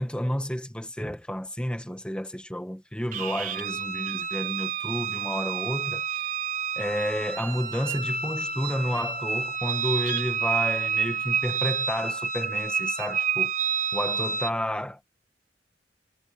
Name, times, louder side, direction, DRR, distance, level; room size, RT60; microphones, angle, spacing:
voice 1, 0.0-6.2 6.8-13.5 13.9-15.0, equal, 5° left, 1.9 m, -31 dB
sound 1, 3.1-14.5, right 6 dB, 50° right, 4.4 m, -29 dB
head